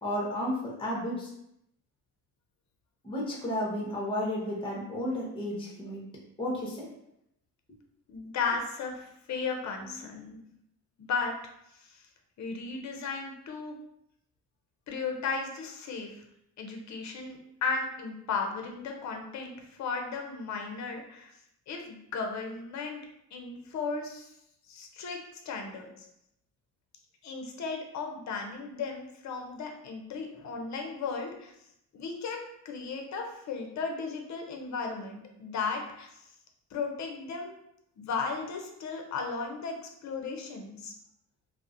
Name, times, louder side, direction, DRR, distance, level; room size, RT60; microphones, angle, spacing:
voice 1, 0.0-1.3 3.0-6.0 6.4-6.9 9.9-10.0, left 1 dB, 15° left, -3 dB, 0.8 m, -32 dB
voice 2, 8.1-10.4 11.0-11.3 11.8-12.0 12.4-13.8 14.9-16.1 16.6-21.3 21.7-23.0 23.3-24.3 24.7-25.2 25.5-26.1 27.2-31.5 31.9-36.1 36.7-37.5 38.0-40.9, left 4 dB, 45° left, 3 dB, 0.6 m, -35 dB
2.3 x 2.0 x 2.5 m, 0.78 s
supercardioid pair, 65°, 41 cm